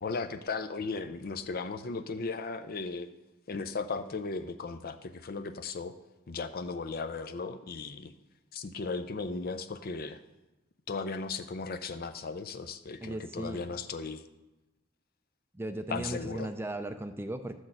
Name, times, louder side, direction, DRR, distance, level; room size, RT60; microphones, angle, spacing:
voice 1, 0.0-3.1 3.5-5.9 6.3-8.1 8.5-10.2 10.9-14.2 15.9-16.5, left 4 dB, 50° left, 10 dB, 0.5 m, -36 dB
voice 2, 13.0-13.6 15.5-17.6, right 1 dB, 10° right, 8 dB, 0.4 m, -37 dB
11.5 x 6.4 x 7.7 m, 1.1 s
head